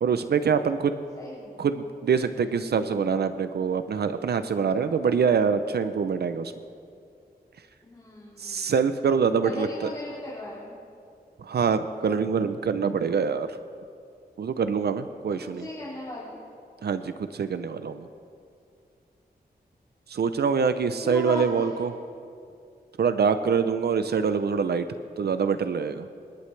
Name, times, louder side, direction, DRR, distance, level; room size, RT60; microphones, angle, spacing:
voice 1, 0.0-1.0 1.6-6.5 8.4-9.9 11.4-13.6 14.4-15.7 16.8-18.1 20.1-21.9 23.0-24.8 25.2-26.1, right 6 dB, 80° right, 10 dB, 0.6 m, -25 dB
voice 2, 1.2-1.7 7.8-8.7 9.4-10.7 15.6-16.4 21.0-21.8, left 1 dB, 25° left, -9 dB, 3.2 m, -37 dB
28.0 x 11.5 x 3.3 m, 2.4 s
wide cardioid pair, 105°, 17 cm